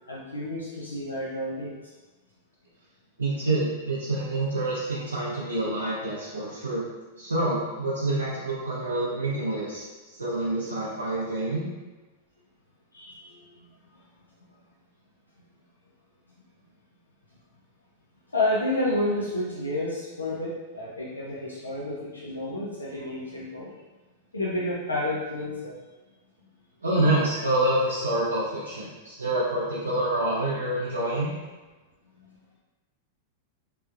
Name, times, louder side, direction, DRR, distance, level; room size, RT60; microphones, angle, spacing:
voice 1, 0.0-1.9 12.9-14.0 18.3-23.7 24.3-25.8 32.2-32.3, left 1 dB, 85° left, -6 dB, 0.5 m, -30 dB
voice 2, 3.2-6.9 7.2-9.8 10.1-11.7 26.8-31.3, right 1 dB, 80° right, -7 dB, 0.5 m, -27 dB
3.2 x 3.0 x 2.4 m, 1.2 s
figure-of-eight pair, 95°, 0 cm